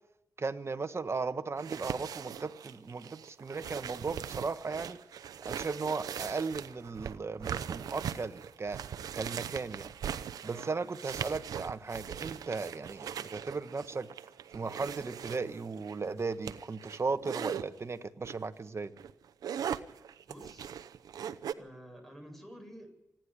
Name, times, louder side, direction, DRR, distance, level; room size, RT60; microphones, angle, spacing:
voice 1, 0.4-5.0 5.4-8.8 9.1-9.9 10.4-14.1 14.5-18.9, right 4 dB, 45° right, 10 dB, 1.4 m, -36 dB
sound 1, 1.6-17.6 18.2-18.5 18.9-21.5, right 8 dB, 85° right, 0.7 m, -40 dB
voice 2, 10.4-10.8 20.3-20.7 21.5-22.9, equal, 5° left, 5 dB, 8.0 m, -50 dB
25.5 x 10.5 x 9.8 m, 0.90 s
cardioid pair, 50°, 6 cm